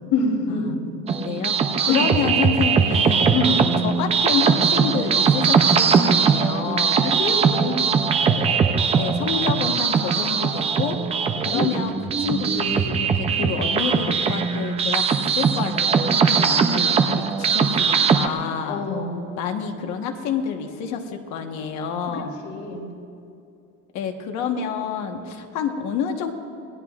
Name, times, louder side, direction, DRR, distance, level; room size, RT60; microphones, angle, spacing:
voice 1, 0.1-0.9 1.9-2.1 3.3-3.7 7.0-7.8 8.3-8.5 11.3-11.7 18.7-19.2 22.1-22.9, left 3 dB, 85° left, 0 dB, 3.1 m, -26 dB
sound 1, 1.1-18.3, right 6 dB, 20° right, 0.4 m, -20 dB
voice 2, 1.2-1.5 1.9-3.4 3.8-7.1 9.0-11.0 11.4-18.8 19.4-22.3 23.9-26.3, left 7 dB, 65° left, 4 dB, 1.2 m, -28 dB
26.0 x 18.5 x 2.4 m, 2.6 s
cardioid pair, 175°, 30 cm